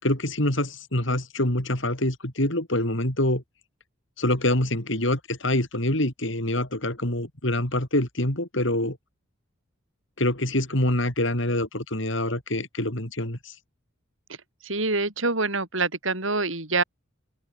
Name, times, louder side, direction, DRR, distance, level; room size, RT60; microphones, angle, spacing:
voice 1, 0.0-3.4 4.2-9.0 10.2-13.5, left 1 dB, 60° left, 4.9 m, -25 dB
voice 2, 14.6-16.8, right 3 dB, 65° right, 5.7 m, -25 dB
open air
head